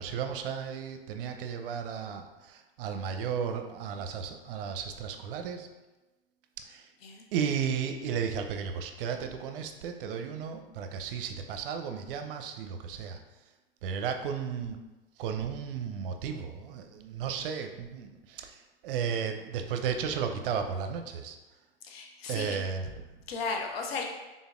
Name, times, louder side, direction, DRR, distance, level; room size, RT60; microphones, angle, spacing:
voice 1, 0.0-5.7 6.7-6.8 7.3-13.2 13.8-14.8 15.2-18.5 18.8-21.4 22.3-22.9, right 7 dB, 65° right, 6 dB, 0.5 m, -34 dB
voice 2, 21.8-22.6 23.3-24.0, left 4 dB, 75° left, 2 dB, 0.7 m, -35 dB
3.9 x 3.7 x 2.4 m, 1.1 s
hypercardioid pair, 95°, 30 cm